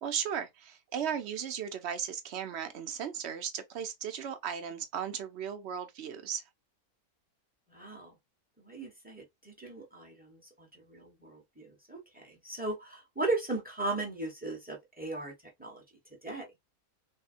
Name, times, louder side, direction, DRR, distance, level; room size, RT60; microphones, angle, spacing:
voice 1, 0.0-6.4, right 8 dB, 60° right, 0.8 m, -36 dB
voice 2, 7.7-8.1 8.6-15.3 15.6-15.8 16.2-16.5, right 2 dB, 10° right, 0.8 m, -37 dB
3.5 x 2.1 x 2.5 m
omnidirectional pair, 1.5 m